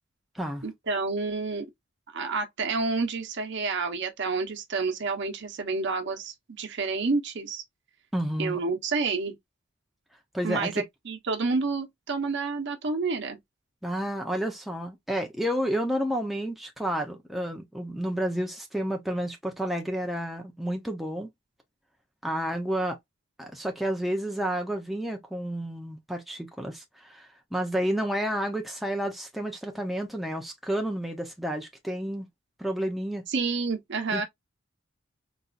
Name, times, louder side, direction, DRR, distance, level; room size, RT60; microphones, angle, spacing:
voice 1, 0.6-1.7 2.1-7.6 8.4-9.3 10.4-13.4 33.3-34.2, right 4 dB, 60° right, 0.8 m, -29 dB
voice 2, 8.1-8.6 10.3-10.8 13.8-21.3 22.2-23.0 23.4-32.3 32.6-33.2 34.1-34.2, equal, ahead, 0.5 m, -30 dB
4.0 x 2.3 x 2.4 m
head